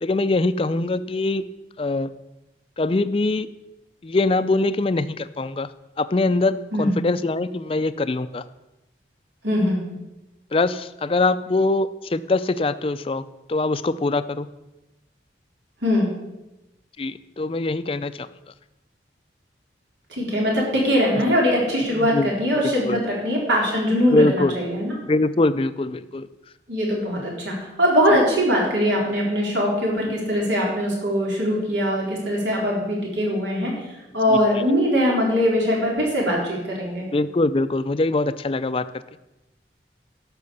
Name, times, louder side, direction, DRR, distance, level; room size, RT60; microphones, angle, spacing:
voice 1, 0.0-1.4 1.8-2.1 2.8-3.5 4.0-5.7 6.0-8.4 10.5-13.2 13.5-14.5 17.0-18.3 22.0-22.3 22.6-23.0 24.1-24.5 25.1-26.3 34.3-34.4 37.1-38.8, left 2 dB, 30° left, 13 dB, 0.4 m, -23 dB
voice 2, 9.4-9.8 15.8-16.1 20.1-24.9 26.7-33.7 34.1-37.1, equal, 85° right, -3 dB, 4.0 m, -21 dB
11.5 x 6.2 x 7.0 m, 0.99 s
head